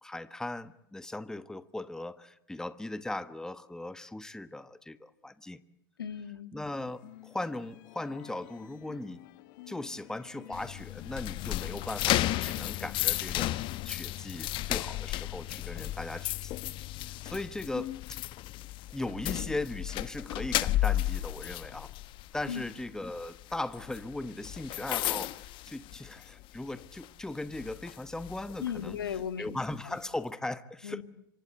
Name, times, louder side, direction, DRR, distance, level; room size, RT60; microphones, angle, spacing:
voice 1, 0.0-5.6 6.5-9.2 9.7-16.5 17.0-18.2 18.9-21.9 22.3-29.0 29.4-31.0, left 2 dB, 5° left, 14 dB, 1.3 m, -38 dB
voice 2, 6.0-6.6 22.5-22.6 28.6-29.5 29.9-30.0 30.8-31.0, left 8 dB, 85° left, 11 dB, 1.9 m, -36 dB
sound 1, 6.7-13.9, left 15 dB, 65° left, 1.9 m, -51 dB
sound 2, 10.5-26.5 26.8-27.1 27.5-29.2, left 16 dB, 45° left, 1.2 m, -34 dB
27.0 x 25.0 x 7.9 m, 0.77 s
hypercardioid pair, 95°, 12 cm